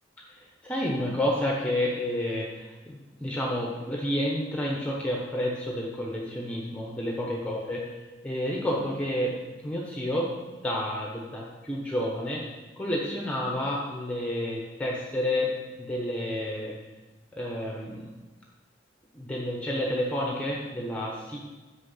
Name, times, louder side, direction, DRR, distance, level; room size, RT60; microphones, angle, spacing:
voice 1, 0.3-10.3 10.6-12.4 12.8-15.5 15.8-16.8 17.3-18.1 19.1-21.4, left 1 dB, 5° left, -2 dB, 1.0 m, -30 dB
7.9 x 6.3 x 5.6 m, 1.3 s
head